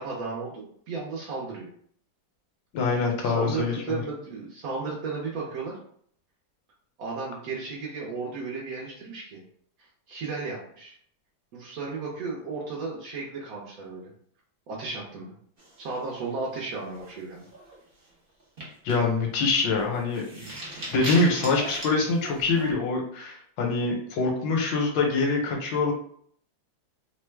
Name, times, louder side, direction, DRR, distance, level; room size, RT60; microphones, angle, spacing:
voice 1, 0.0-1.7 3.2-5.8 7.0-9.4 10.1-10.9 11.5-14.1 14.7-15.3 15.8-17.5 20.3-20.5, right 4 dB, 65° right, -3 dB, 0.9 m, -34 dB
voice 2, 2.7-4.0 18.8-20.2 20.9-25.9, left 3 dB, 75° left, 1 dB, 1.4 m, -25 dB
sound 1, 15.6-16.4 16.8-17.1 17.4-17.8 18.4-22.7, right 1 dB, 50° right, 0.6 m, -38 dB
3.1 x 2.1 x 3.3 m, 0.62 s
omnidirectional pair, 2.1 m